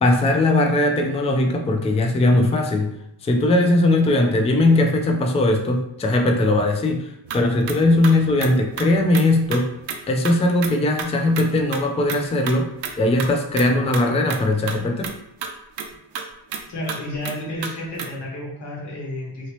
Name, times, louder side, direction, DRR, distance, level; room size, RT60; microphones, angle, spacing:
voice 1, 0.0-2.9 3.2-9.7 10.1-12.7 13.0-15.1, left 2 dB, 15° left, 3 dB, 0.3 m, -19 dB
sound 1, 7.2-10.0 10.2-10.3 10.6-10.7 11.0-11.1 11.3-11.5 11.7-11.8 12.1-12.5 12.8-13.3 13.6-13.7 13.9-14.0 14.3-14.4 14.7-14.8 15.0-15.1 15.4-15.5 15.8-15.9 16.1-16.2 16.5-16.6 16.9-17.0 17.2-17.3 17.6-17.7 18.0-18.1, right 6 dB, 85° right, 0.5 m, -31 dB
voice 2, 16.7-19.5, left 1 dB, 80° left, -4 dB, 1.3 m, -31 dB
3.0 x 2.8 x 3.0 m, 0.81 s
cardioid pair, 110°, 40 cm